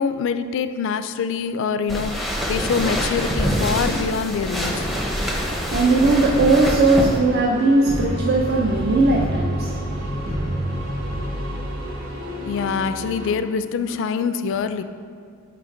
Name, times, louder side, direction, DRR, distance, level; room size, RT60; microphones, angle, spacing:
voice 1, 0.0-4.9 12.4-14.8, left 6 dB, 65° left, 11 dB, 0.3 m, -25 dB
sound 1, 1.9-7.2, equal, ahead, 0.6 m, -25 dB
sound 2, 4.5-13.3, equal, 85° right, 1.4 m, -30 dB
voice 2, 5.4-12.7, right 2 dB, 50° right, -2 dB, 0.5 m, -21 dB
9.3 x 3.3 x 3.8 m, 2.1 s
head